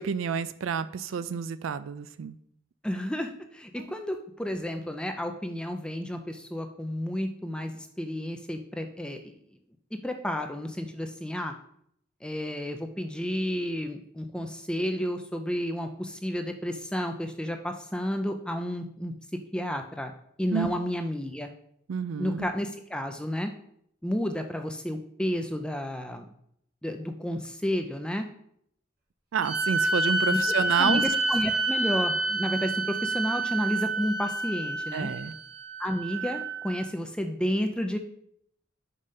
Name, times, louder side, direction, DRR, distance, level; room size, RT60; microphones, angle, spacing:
voice 1, 0.0-2.4 3.8-3.9 20.5-20.7 21.9-22.5 29.3-31.0 34.9-35.3, right 6 dB, 85° right, 14 dB, 0.4 m, -29 dB
voice 2, 2.8-9.3 9.9-11.5 12.2-19.1 19.5-20.1 20.4-21.5 22.2-23.5 24.0-26.3 26.8-28.3 30.3-30.4 30.8-35.1 35.8-38.0, equal, 5° left, 6 dB, 0.4 m, -31 dB
sound 1, 29.4-36.9, right 2 dB, 45° right, 1.7 m, -28 dB
5.4 x 5.3 x 5.4 m, 0.71 s
head